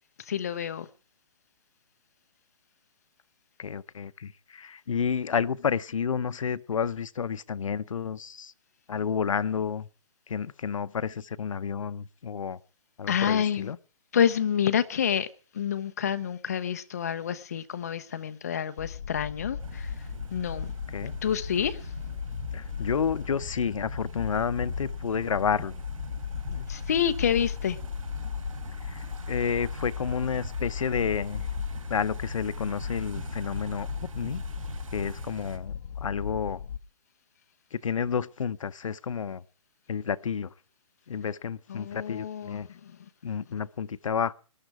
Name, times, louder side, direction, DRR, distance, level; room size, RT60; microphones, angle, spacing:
voice 1, 0.3-0.9 13.1-13.7 14.1-15.3 15.5-19.9 20.3-20.7 21.2-21.8 26.7-27.8 41.7-42.9, left 8 dB, 30° left, 0.8 m, -28 dB
voice 2, 3.6-8.5 8.9-9.9 10.3-12.6 13.0-13.8 20.9-21.1 22.5-25.7 26.5-26.7 28.9-31.5 31.9-34.4 34.9-36.6 37.7-39.4 39.9-40.5 41.1-42.7 43.2-44.3, left 7 dB, 70° left, 0.8 m, -30 dB
sound 1, 18.8-36.8, left 7 dB, 45° left, 1.2 m, -36 dB
sound 2, 19.6-35.6, right 4 dB, 75° right, 3.5 m, -43 dB
20.0 x 12.0 x 4.8 m
hypercardioid pair, 180°, 18 cm